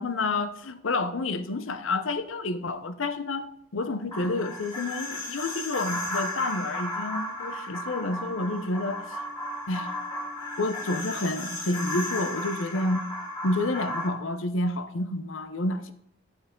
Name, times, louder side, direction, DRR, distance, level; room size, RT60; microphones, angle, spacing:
voice 1, 0.0-9.1 9.7-10.0 10.6-13.1 13.4-15.9, left 2 dB, 80° left, 0.7 m, -29 dB
sound 1, 4.1-14.1, left 1 dB, 20° left, 2.2 m, -34 dB
12.0 x 5.8 x 3.7 m
head